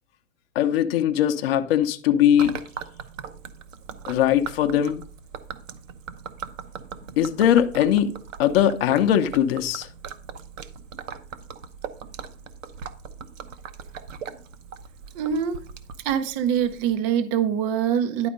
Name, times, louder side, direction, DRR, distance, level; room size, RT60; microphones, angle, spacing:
voice 1, 0.6-2.6 4.1-5.0 7.2-8.1 8.4-9.9, left 10 dB, 45° left, 0.7 m, -20 dB
Gurgling / Liquid, 2.4-17.0, right 7 dB, 65° right, 0.9 m, -40 dB
voice 2, 15.1-15.6 16.0-18.3, right 8 dB, 20° right, 0.5 m, -24 dB
10.5 x 4.2 x 5.1 m
hypercardioid pair, 130°, 42 cm